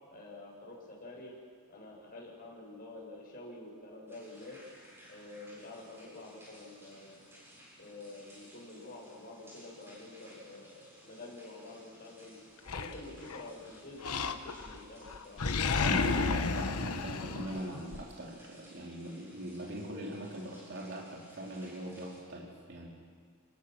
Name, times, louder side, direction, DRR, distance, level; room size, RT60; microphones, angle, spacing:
voice 1, 0.1-1.3 1.7-4.6 5.1-7.2 7.8-12.4 12.6-15.4, left 2 dB, 40° left, -4 dB, 7.6 m, -48 dB
sound 1, 4.1-22.2, equal, 10° right, 7.7 m, -58 dB
Animal, 12.7-13.5 14.0-14.8 15.1-18.0, left 4 dB, 75° left, 1.1 m, -32 dB
voice 2, 15.8-22.9, right 1 dB, 50° right, -2 dB, 2.8 m, -41 dB
29.5 x 20.0 x 6.4 m, 2.1 s
head